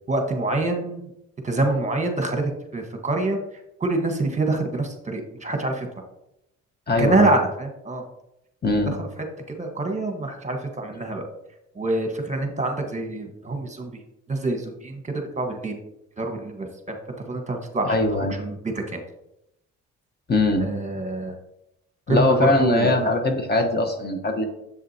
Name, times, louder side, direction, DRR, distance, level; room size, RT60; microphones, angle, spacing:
voice 1, 0.1-1.0 1.4-2.4 2.7-3.4 3.8-5.9 7.0-8.0 8.9-9.1 9.6-11.2 11.7-13.9 14.3-15.8 16.2-17.9 18.3-19.0 20.6-21.3 22.1-23.1, right 2 dB, 25° right, 4 dB, 1.4 m, -26 dB
voice 2, 6.9-7.3 8.6-8.9 17.8-18.4 20.3-20.7 22.1-24.4, left 2 dB, 35° left, 4 dB, 1.2 m, -21 dB
7.4 x 7.3 x 2.8 m, 0.81 s
cardioid pair, 90°, 30 cm